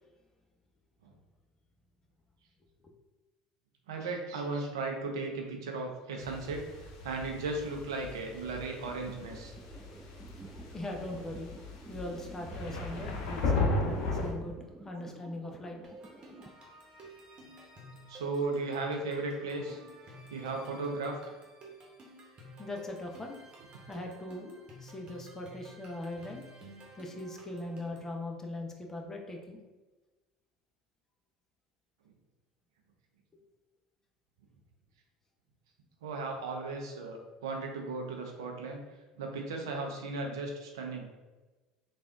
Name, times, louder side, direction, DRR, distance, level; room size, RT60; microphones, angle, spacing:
voice 1, 3.9-6.6 7.0-9.5 18.1-19.8 20.3-21.2 36.0-38.8 39.2-41.1, right 3 dB, 75° right, 2 dB, 0.6 m, -36 dB
sound 1, 6.2-14.3, left 3 dB, 60° left, 0.7 m, -36 dB
sound 2, 8.7-16.5, right 3 dB, 20° right, 0.3 m, -51 dB
voice 2, 10.7-11.5 11.9-14.6 14.8-15.8 22.6-23.4 23.9-29.6, left 1 dB, 20° left, 2 dB, 0.8 m, -40 dB
sound 3, 15.8-28.1, right 1 dB, 40° right, 1.1 m, -52 dB
3.5 x 2.4 x 3.5 m, 1.2 s
hypercardioid pair, 70°, 2 cm